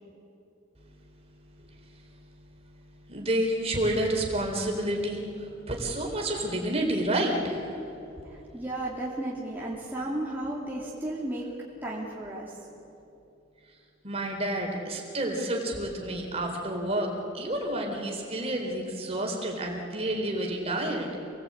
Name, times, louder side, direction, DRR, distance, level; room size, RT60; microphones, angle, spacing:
voice 1, 3.1-7.7 14.0-21.1, right 1 dB, 30° right, 1 dB, 3.9 m, -29 dB
voice 2, 8.2-11.5 11.8-12.6, right 1 dB, 10° right, -6 dB, 2.7 m, -34 dB
27.5 x 19.5 x 8.6 m, 2.8 s
head